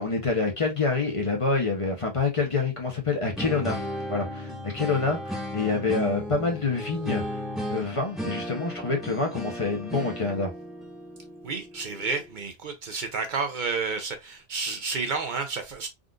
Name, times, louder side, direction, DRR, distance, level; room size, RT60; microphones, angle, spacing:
voice 1, 0.0-7.4 7.7-10.5, left 4 dB, 35° left, 0.7 m, -27 dB
sound 1, 3.4-12.3, equal, ahead, 0.9 m, -35 dB
voice 2, 11.4-15.9, right 4 dB, 55° right, 0.7 m, -30 dB
3.7 x 2.4 x 2.3 m
omnidirectional pair, 1.0 m